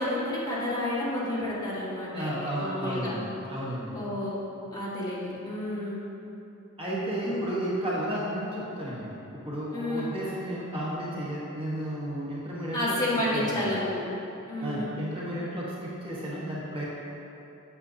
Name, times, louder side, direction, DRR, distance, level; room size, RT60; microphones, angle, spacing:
voice 1, 0.0-3.1 3.9-4.4 4.7-6.0 7.2-7.4 9.7-10.1 12.7-14.0 14.5-15.0, left 1 dB, 20° left, -9 dB, 1.6 m, -30 dB
voice 2, 2.1-4.0 6.8-13.0 13.3-13.7 14.6-16.8, right 1 dB, 25° right, -8 dB, 1.2 m, -33 dB
8.3 x 7.5 x 2.7 m, 3.0 s
head